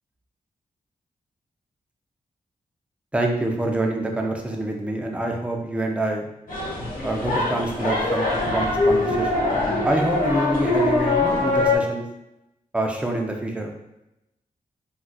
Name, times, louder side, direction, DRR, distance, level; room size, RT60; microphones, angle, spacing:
voice 1, 3.1-6.3 7.0-9.5 9.8-12.0 12.7-13.7, right 1 dB, 10° right, 1 dB, 0.5 m, -26 dB
sound 1, 6.5-11.8, left 2 dB, 75° left, 1.0 m, -23 dB
3.9 x 2.5 x 2.2 m, 0.89 s
wide cardioid pair, 90°, 14 cm